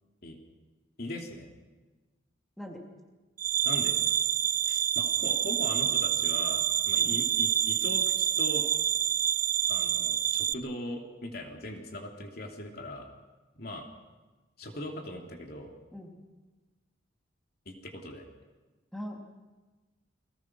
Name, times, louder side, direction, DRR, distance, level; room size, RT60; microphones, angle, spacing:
voice 1, 1.0-1.5 3.6-4.0 4.7-8.7 9.7-13.1 13.5-13.9 14.6-15.7 17.7-18.2, left 1 dB, 50° left, 3 dB, 3.1 m, -40 dB
voice 2, 2.6-2.8 7.0-7.2 15.9-16.1 18.9-19.2, equal, ahead, 0 dB, 3.2 m, -41 dB
sound 1, 3.4-10.5, right 9 dB, 45° right, 0.7 m, -27 dB
29.5 x 21.0 x 6.2 m, 1.2 s
head